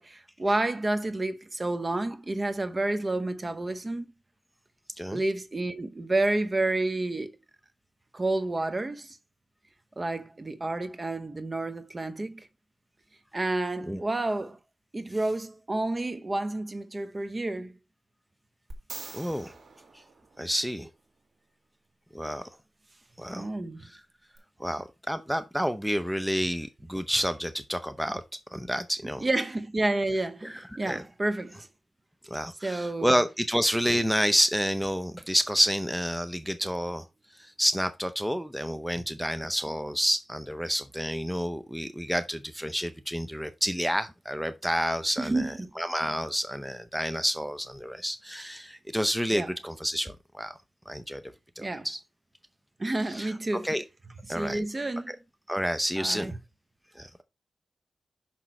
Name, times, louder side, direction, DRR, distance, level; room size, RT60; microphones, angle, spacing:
voice 1, 0.0-4.0 5.1-7.3 8.1-9.2 10.0-12.5 13.3-14.6 14.9-17.7 23.3-23.9 29.2-31.7 32.6-33.2 45.2-45.7 49.3-49.5 51.6-51.9 52.8-53.7 54.3-55.1 56.0-56.4, right 2 dB, 30° right, 0.9 m, -30 dB
sound 1, 18.7-20.9 24.4-24.5, right 3 dB, 55° right, 2.1 m, -44 dB
voice 2, 19.1-19.5 20.4-20.9 22.1-22.4 23.2-23.5 24.6-28.2 28.5-29.2 30.4-31.0 32.3-37.0 37.4-50.6 50.9-51.2 51.6-52.0 53.1-53.3 53.6-53.8 54.3-54.6 55.1-55.2 55.5-56.3 57.0-57.1, equal, ahead, 0.6 m, -29 dB
6.1 x 6.0 x 4.3 m
wide cardioid pair, 90°, 0 cm